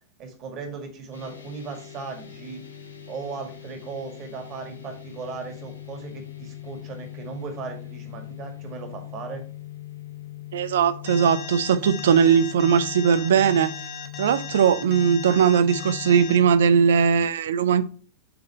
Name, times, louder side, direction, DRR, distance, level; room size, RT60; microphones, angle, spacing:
voice 1, 0.2-2.6 3.1-9.4, right 5 dB, 35° right, 1.9 m, -37 dB
sound 1, 1.1-17.1, left 13 dB, 75° left, 1.1 m, -41 dB
voice 2, 10.5-13.7 14.2-17.8, right 7 dB, 60° right, 0.5 m, -19 dB
Alarm, 11.1-16.4, left 7 dB, 40° left, 1.2 m, -37 dB
7.8 x 3.8 x 4.4 m
figure-of-eight pair, 90°, 0 cm